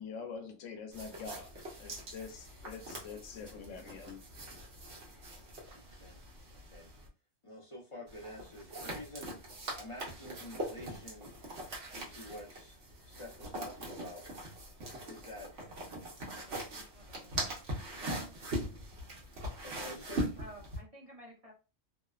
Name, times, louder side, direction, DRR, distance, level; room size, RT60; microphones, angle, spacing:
voice 1, 0.0-1.5 1.8-4.2, left 5 dB, 80° left, 0.9 m, -45 dB
sound 1, 0.9-7.1 8.1-20.8, right 1 dB, 65° right, 1.1 m, -42 dB
voice 2, 5.7-6.2 6.7-6.9 7.4-9.4 9.7-11.3 12.1-14.2 15.0-15.5 19.6-20.4, left 1 dB, 35° left, 0.5 m, -48 dB
voice 3, 16.4-17.4 20.4-21.5, equal, 35° right, 0.8 m, -53 dB
2.8 x 2.1 x 2.3 m
omnidirectional pair, 1.3 m